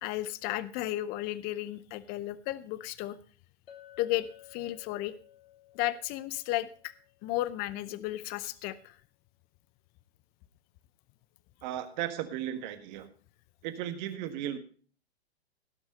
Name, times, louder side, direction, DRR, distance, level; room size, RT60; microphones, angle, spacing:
voice 1, 0.0-3.2 4.0-5.1 5.7-6.9 7.2-8.9, left 15 dB, 30° left, 17 dB, 0.7 m, -34 dB
Chink clink, 3.7-8.1, left 11 dB, 65° left, 1.4 m, -56 dB
voice 2, 11.6-13.1 13.6-14.6, right 11 dB, 45° right, 10 dB, 1.6 m, -35 dB
17.0 x 6.1 x 5.3 m, 0.43 s
hypercardioid pair, 115°, 32 cm